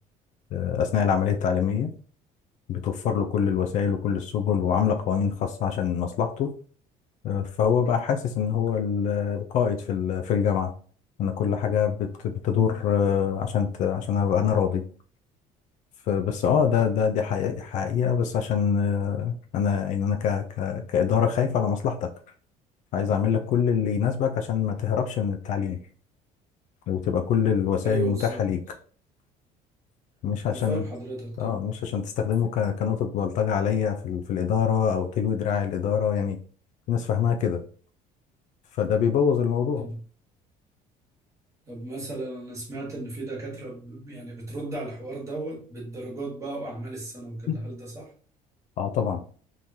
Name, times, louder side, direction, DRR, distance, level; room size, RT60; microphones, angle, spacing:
voice 1, 0.5-1.9 2.7-6.5 7.2-10.7 11.2-14.8 16.1-22.1 22.9-25.8 26.9-28.6 30.2-30.8 31.4-36.4 36.9-37.6 38.8-39.9 47.5-47.6 48.8-49.2, left 7 dB, 50° left, 5 dB, 0.4 m, -25 dB
voice 2, 12.5-12.8 27.8-28.4 30.4-31.6 39.8-40.0 41.7-48.1, right 2 dB, 20° right, -2 dB, 1.4 m, -35 dB
3.7 x 3.1 x 2.7 m, 0.43 s
cardioid pair, 165°, 15 cm